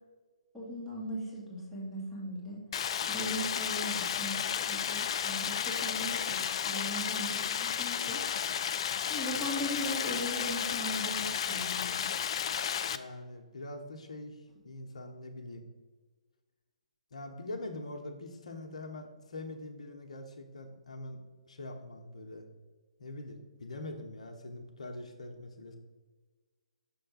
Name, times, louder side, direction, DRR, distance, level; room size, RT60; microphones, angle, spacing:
voice 1, 0.5-2.6 3.1-4.4 4.7-8.3 9.1-12.1, equal, ahead, -8 dB, 1.9 m, -39 dB
Stream, 2.7-13.0, left 8 dB, 50° left, 0.3 m, -33 dB
voice 2, 12.9-14.4 14.6-15.6 17.1-21.2 21.5-22.4 23.0-25.8, left 2 dB, 70° left, 4 dB, 0.9 m, -43 dB
6.2 x 3.3 x 5.6 m, 1.3 s
hypercardioid pair, 140°, 4 cm